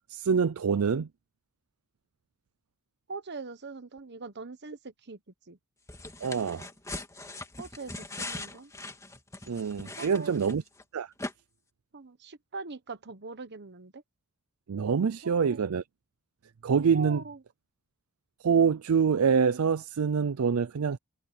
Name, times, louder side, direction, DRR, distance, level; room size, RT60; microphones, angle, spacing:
voice 1, 0.1-1.1 6.2-6.7 9.5-10.6 10.9-11.1 14.7-15.8 16.6-17.2 18.4-21.0, right 6 dB, 85° right, 0.5 m, -25 dB
voice 2, 3.1-5.2 5.5-5.6 7.6-8.7 10.0-10.6 11.9-14.0 15.2-15.6 16.9-17.4, right 4 dB, 55° right, 1.2 m, -42 dB
sound 1, 5.9-10.8 11.2-11.3, left 2 dB, 15° left, 2.6 m, -40 dB
head